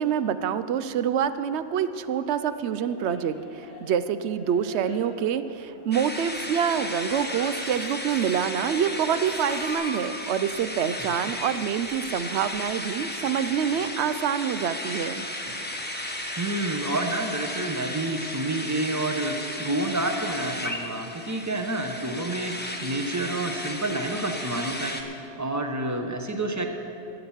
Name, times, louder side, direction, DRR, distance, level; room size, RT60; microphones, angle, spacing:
voice 1, 0.0-15.2, right 8 dB, 85° right, 13 dB, 0.9 m, -26 dB
sound 1, 2.2-9.7, equal, 45° right, 2.4 m, -45 dB
sound 2, 5.9-25.0, left 1 dB, 10° left, 1.0 m, -34 dB
voice 2, 16.4-22.5 22.8-25.0 25.4-26.7, right 2 dB, 15° right, 4 dB, 0.9 m, -29 dB
13.5 x 8.8 x 7.2 m, 2.9 s
omnidirectional pair, 1.1 m